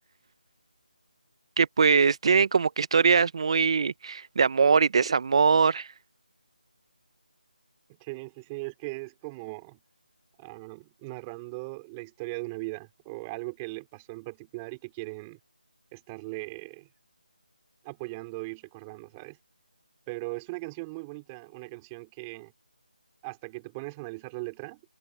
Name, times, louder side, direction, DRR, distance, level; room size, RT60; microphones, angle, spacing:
voice 1, 1.6-5.9, right 5 dB, 35° right, 0.7 m, -22 dB
voice 2, 8.0-9.8 10.4-15.4 15.9-16.9 17.8-19.4 20.1-22.5 23.2-24.8, right 26 dB, 15° right, 3.5 m, -39 dB
figure-of-eight pair, 165°, 5 cm